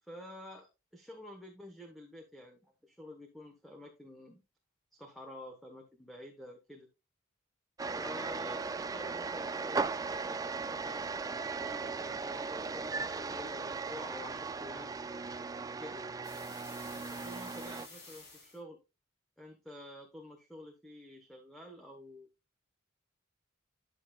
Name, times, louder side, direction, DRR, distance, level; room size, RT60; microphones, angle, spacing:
voice 1, 0.0-4.4 4.9-6.9 7.9-9.8 10.1-11.0 11.4-14.9 15.8-16.1 17.2-18.8 19.4-22.3, left 1 dB, ahead, 2 dB, 1.1 m, -49 dB
sound 1, 7.8-17.9, right 4 dB, 15° right, 0.3 m, -37 dB
sound 2, 16.2-18.6, left 3 dB, 55° left, 3.6 m, -52 dB
11.0 x 6.5 x 2.3 m, 0.26 s
head